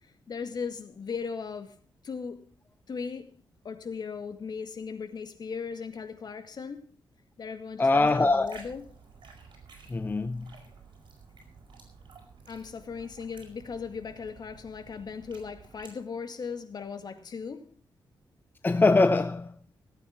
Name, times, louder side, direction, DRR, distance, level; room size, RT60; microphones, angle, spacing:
voice 1, 0.3-1.8 2.0-2.5 2.9-3.3 3.6-6.9 7.4-8.8 12.5-17.7, left 5 dB, 55° left, 2.1 m, -37 dB
voice 2, 7.8-8.7 9.9-10.5 18.6-19.6, left 3 dB, 25° left, 0.7 m, -23 dB
sound 1, 7.9-15.9, right 5 dB, 65° right, 6.1 m, -52 dB
17.5 x 9.1 x 5.9 m
cardioid pair, 100°, 8 cm